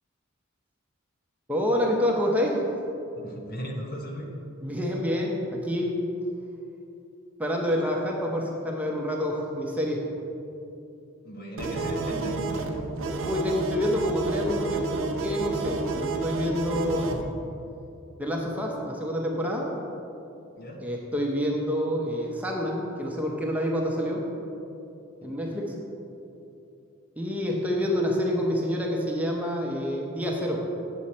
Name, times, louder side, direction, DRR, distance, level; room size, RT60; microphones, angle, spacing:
voice 1, 1.5-2.6 4.6-5.9 7.4-10.0 13.2-17.1 18.2-19.7 20.8-24.2 25.2-25.8 27.2-30.6, equal, 5° right, -2 dB, 0.8 m, -27 dB
voice 2, 3.2-4.3 11.2-12.6 16.9-17.2 20.6-20.8 25.2-25.3, equal, 45° left, 1 dB, 1.1 m, -37 dB
sound 1, 11.6-17.2, right 3 dB, 65° right, 0.7 m, -30 dB
8.0 x 7.1 x 4.3 m, 2.8 s
head